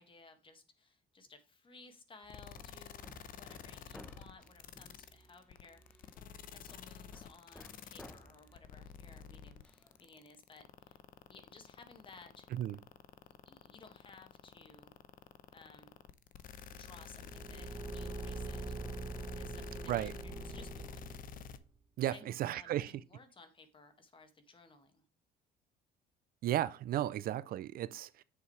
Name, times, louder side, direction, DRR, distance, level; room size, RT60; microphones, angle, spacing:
voice 1, 0.0-6.1 6.5-11.0 11.3-12.5 13.5-14.9 15.5-15.9 16.7-18.8 19.3-21.0 22.1-25.0 27.1-27.2, left 3 dB, 30° left, 1.9 m, -58 dB
Hammer, 2.2-10.1, equal, 5° left, 0.9 m, -58 dB
sound 1, 2.3-21.6, left 8 dB, 55° left, 0.8 m, -50 dB
Car / Engine, 17.0-21.6, right 3 dB, 25° right, 0.9 m, -44 dB
voice 2, 22.0-22.9 26.4-28.2, right 13 dB, 60° right, 0.5 m, -34 dB
8.2 x 7.3 x 3.2 m
cardioid pair, 110°, 17 cm